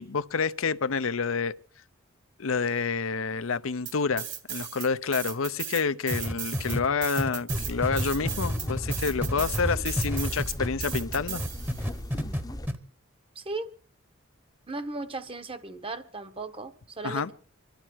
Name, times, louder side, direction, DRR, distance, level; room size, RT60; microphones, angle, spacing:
voice 1, 0.0-1.5 2.4-11.4 17.0-17.3, left 5 dB, 75° left, 0.7 m, -28 dB
sound 1, 3.9-4.9 5.1-12.0, right 10 dB, 60° right, 2.8 m, -36 dB
sound 2, 6.1-11.0 11.4-12.4 12.7-12.8, equal, 10° right, 1.0 m, -29 dB
sound 3, 7.5-12.7, left 1 dB, 20° left, 0.8 m, -37 dB
voice 2, 13.3-13.7 14.7-17.3, right 3 dB, 25° right, 1.1 m, -36 dB
26.5 x 12.0 x 4.6 m
head